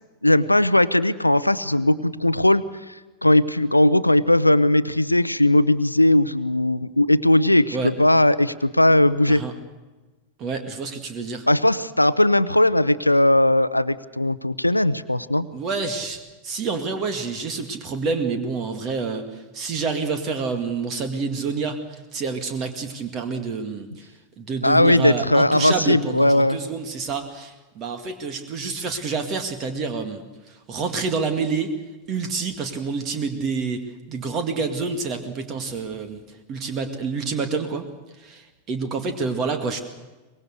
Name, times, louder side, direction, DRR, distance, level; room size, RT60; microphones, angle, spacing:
voice 1, 0.2-2.6 3.2-9.4 11.5-15.5 24.6-26.6, left 1 dB, 85° left, 14 dB, 0.7 m, -18 dB
voice 2, 10.4-11.5 15.5-24.1 24.4-30.2 30.5-31.7 32.1-33.8 34.1-37.8 38.2-39.8, right 4 dB, 35° right, 6 dB, 2.0 m, -28 dB
24.0 x 21.0 x 6.6 m, 1.2 s
figure-of-eight pair, 90°, 0 cm